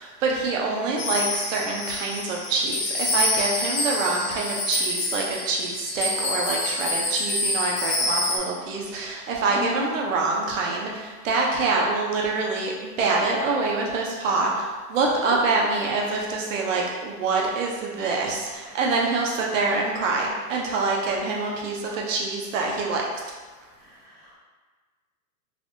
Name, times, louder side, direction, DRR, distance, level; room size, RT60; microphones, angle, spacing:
voice 1, 0.0-23.1, right 3 dB, 60° right, -2 dB, 0.8 m, -25 dB
sound 1, 1.0-8.4, left 1 dB, 55° left, 0.7 m, -27 dB
voice 2, 9.5-10.0 15.2-15.4 18.6-18.9 21.9-22.0 23.8-24.3, left 1 dB, ahead, -16 dB, 0.5 m, -37 dB
3.3 x 3.2 x 2.6 m, 1.4 s
hypercardioid pair, 155°, 44 cm